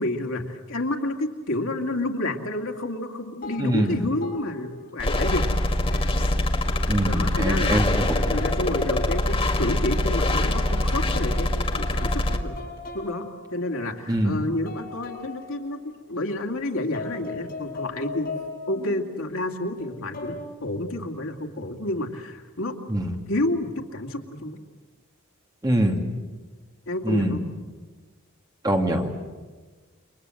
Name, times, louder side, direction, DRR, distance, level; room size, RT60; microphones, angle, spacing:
voice 1, 0.0-5.6 7.1-12.6 12.9-18.3 18.7-22.8 23.3-24.6 26.9-27.4, left 1 dB, 80° left, 3 dB, 2.3 m, -30 dB
sound 1, 3.4-3.9 4.2-4.9 5.3-7.5 7.9-9.6 9.9-11.4 11.7-14.2 14.7-16.3 16.9-19.1 19.8-20.4, left 3 dB, 45° left, 7.0 m, -39 dB
voice 2, 3.6-4.0 6.9-8.4 14.1-14.3 22.9-23.1 25.6-26.0 27.0-27.4 28.6-29.1, right 1 dB, 20° right, 2 dB, 2.6 m, -23 dB
sound 2, 5.0-12.4, left 1 dB, 25° left, 1.8 m, -24 dB
29.0 x 24.5 x 7.8 m, 1.4 s
head